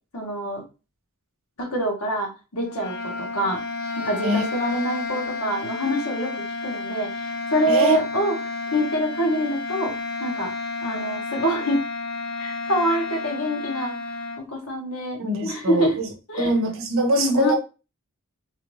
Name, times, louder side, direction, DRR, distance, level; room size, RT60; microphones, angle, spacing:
voice 1, 0.1-0.6 1.6-3.6 4.0-8.4 8.7-9.9 10.2-10.5 10.8-11.8 12.4-13.9 14.4-16.0 16.3-16.5 17.2-17.6, equal, 75° left, 1.3 m, -25 dB
sound 1, 2.6-14.4, left 3 dB, 50° left, 0.6 m, -31 dB
voice 2, 7.7-8.0 15.2-15.9 16.4-17.6, right 1 dB, 60° right, 0.9 m, -22 dB
3.5 x 2.5 x 3.0 m
head